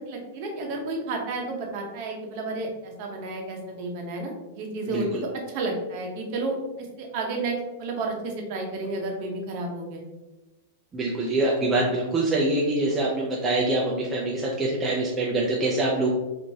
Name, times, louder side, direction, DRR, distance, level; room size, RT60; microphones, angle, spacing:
voice 1, 0.0-10.0, right 2 dB, 40° right, 1 dB, 0.8 m, -31 dB
voice 2, 4.9-5.2 10.9-16.1, right 2 dB, 10° right, -4 dB, 0.4 m, -25 dB
4.5 x 2.5 x 2.7 m, 1.1 s
supercardioid pair, 170°, 0 cm